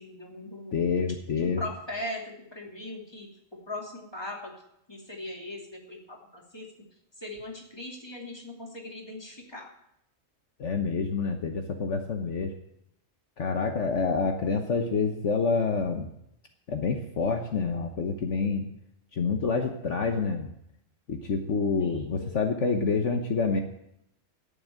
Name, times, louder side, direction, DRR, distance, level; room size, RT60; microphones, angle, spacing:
voice 1, 0.0-1.0 1.3-4.5 4.9-6.7 7.2-9.7 21.8-22.5, left 1 dB, 20° left, -1 dB, 2.8 m, -40 dB
voice 2, 0.7-1.6 10.6-12.5 13.4-16.1 16.7-18.7 19.1-20.5 21.1-23.6, left 4 dB, 65° left, 4 dB, 1.4 m, -27 dB
11.5 x 9.1 x 8.8 m, 0.77 s
omnidirectional pair, 1.4 m